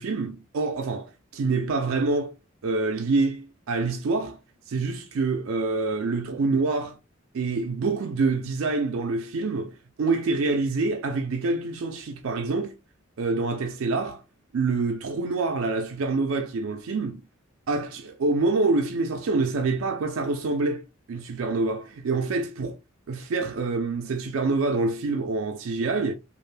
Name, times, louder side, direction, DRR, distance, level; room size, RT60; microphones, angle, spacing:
voice 1, 0.0-2.3 2.6-4.4 4.7-7.0 7.3-12.8 13.2-14.2 14.5-17.2 17.7-22.8 23.1-26.1, right 3 dB, 80° right, 0.4 m, -26 dB
2.4 x 2.1 x 3.2 m
head